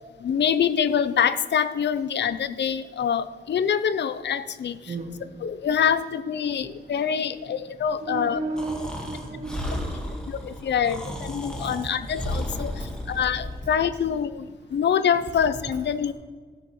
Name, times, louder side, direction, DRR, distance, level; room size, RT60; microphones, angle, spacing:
voice 1, 0.2-4.9 5.4-8.4 10.3-16.1, left 8 dB, 90° left, 13 dB, 0.5 m, -25 dB
voice 2, 4.9-5.5 6.4-6.7 7.1-10.7 11.5-11.9 12.6-13.2 16.1-16.2, right 2 dB, 50° right, 1 dB, 1.1 m, -36 dB
Breathing, 8.6-13.7, left 1 dB, 5° left, 1.5 m, -33 dB
14.0 x 7.8 x 3.1 m, 1.5 s
wide cardioid pair, 150°, 17 cm